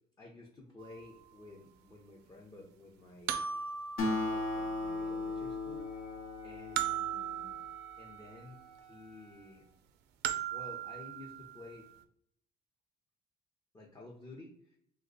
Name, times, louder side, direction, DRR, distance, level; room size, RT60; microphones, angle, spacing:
voice 1, 0.2-3.5 4.0-6.1 6.4-7.6 7.9-9.7 10.5-11.9 13.7-14.8, left 2 dB, 20° left, -2 dB, 0.6 m, -52 dB
sound 1, 0.9-1.0 3.3-5.1 6.8-8.4 10.2-11.7, right 9 dB, 80° right, 0.4 m, -38 dB
Acoustic guitar, 4.0-7.7, left 2 dB, 60° left, 0.9 m, -36 dB
Wind instrument woodwind instrument, 5.8-9.7, right 1 dB, 90° left, 1.4 m, -56 dB
2.9 x 2.2 x 3.8 m, 0.68 s
cardioid pair, 110°, 17 cm